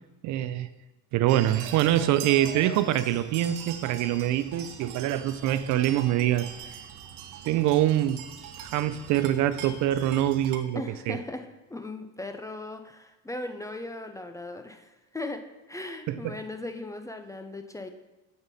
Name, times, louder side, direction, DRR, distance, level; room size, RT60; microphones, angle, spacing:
voice 1, 0.2-0.7 1.1-6.8 7.4-8.3 8.6-11.2 16.1-16.2, right 12 dB, 55° right, 13 dB, 0.5 m, -25 dB
sound 1, 1.3-10.6, right 8 dB, 90° right, 0.9 m, -42 dB
voice 2, 10.7-15.4 15.7-17.9, left 2 dB, 10° left, 6 dB, 0.4 m, -38 dB
7.9 x 5.3 x 4.1 m, 1.1 s
cardioid pair, 115°, 35 cm